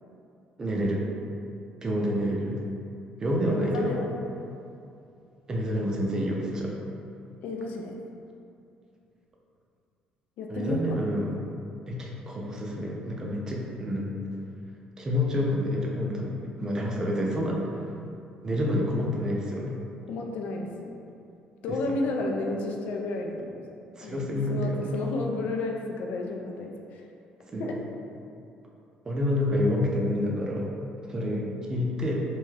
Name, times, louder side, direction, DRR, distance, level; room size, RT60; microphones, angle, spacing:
voice 1, 0.6-1.0 1.8-2.6 3.2-4.0 5.5-6.7 10.5-11.3 11.9-14.1 15.0-17.6 18.4-19.8 24.0-24.9 27.5-27.7 29.1-30.7 31.1-32.2, left 1 dB, 25° right, -2 dB, 0.4 m, -28 dB
voice 2, 3.5-4.1 7.4-7.9 10.4-11.1 20.1-20.7 21.6-23.6 24.0-27.0 27.6-27.8 31.2-31.5, left 2 dB, 70° left, 1 dB, 0.3 m, -32 dB
2.6 x 2.3 x 3.2 m, 2.6 s
cardioid pair, 125°, 3 cm